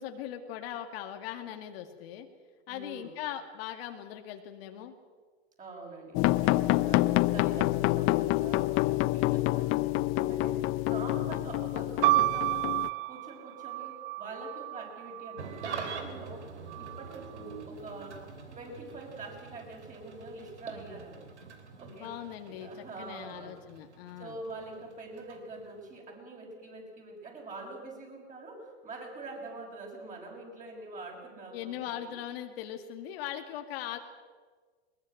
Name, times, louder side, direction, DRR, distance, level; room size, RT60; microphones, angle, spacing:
voice 1, 0.0-2.3 2.7-5.0 21.9-24.4 31.5-34.0, left 11 dB, 60° left, 5 dB, 2.3 m, -40 dB
voice 2, 2.7-3.1 5.6-12.8 13.1-16.5 16.8-18.2 18.5-21.3 21.8-22.1 22.5-23.6 24.2-32.2, right 3 dB, 25° right, 0 dB, 6.2 m, -45 dB
sound 1, 6.1-12.9, left 18 dB, 40° left, 0.7 m, -27 dB
sound 2, 12.0-15.9 16.7-17.4, right 20 dB, 55° right, 0.6 m, -31 dB
Engine starting / Idling, 15.4-26.0, right 5 dB, 85° right, 3.1 m, -45 dB
21.5 x 20.0 x 7.9 m, 1.5 s
hypercardioid pair, 110°, 33 cm